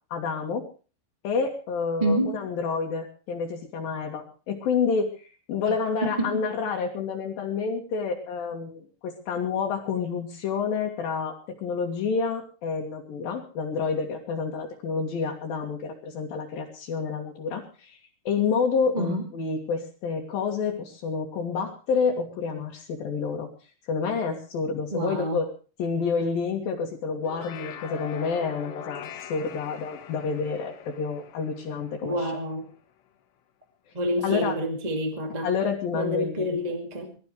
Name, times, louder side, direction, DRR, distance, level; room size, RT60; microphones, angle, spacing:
voice 1, 0.1-0.7 1.2-18.0 18.3-23.5 23.9-25.5 25.8-32.3 34.2-34.6 35.4-36.6, left 5 dB, 60° left, -1 dB, 3.7 m, -29 dB
voice 2, 2.0-2.4 5.7-5.8 6.0-6.4 18.9-19.3 24.9-25.4 32.0-32.7 33.9-35.5 35.9-37.2, equal, 15° right, 3 dB, 1.7 m, -28 dB
sound 1, 27.1-32.6, left 10 dB, 85° left, 3.6 m, -43 dB
24.0 x 14.0 x 3.3 m, 0.37 s
omnidirectional pair, 4.8 m